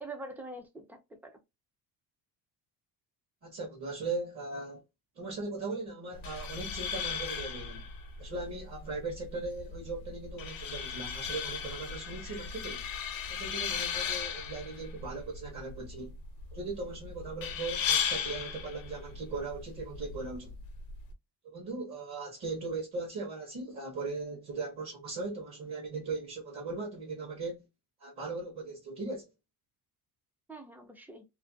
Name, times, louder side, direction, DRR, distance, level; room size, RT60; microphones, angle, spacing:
voice 1, 0.0-1.4 30.5-31.2, right 2 dB, 5° right, 0.4 m, -44 dB
voice 2, 3.4-4.8 5.2-7.8 8.2-12.8 13.3-16.1 16.5-20.5 21.4-27.6 28.0-29.3, right 3 dB, 45° right, 0.9 m, -38 dB
sound 1, 6.1-21.1, left 7 dB, 65° left, 0.7 m, -37 dB
2.4 x 2.1 x 2.5 m
cardioid pair, 145°, 38 cm